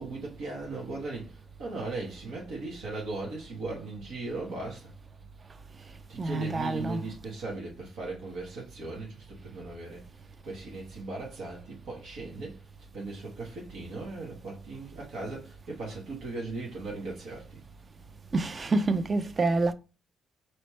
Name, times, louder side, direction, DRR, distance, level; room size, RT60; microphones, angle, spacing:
voice 1, 0.0-4.9 6.1-10.0 10.4-12.6 12.9-17.6, right 3 dB, 80° right, 1.4 m, -38 dB
voice 2, 6.2-7.0 18.3-19.7, right 3 dB, 35° right, 0.5 m, -27 dB
4.3 x 3.1 x 3.1 m
cardioid pair, 90°, 0 cm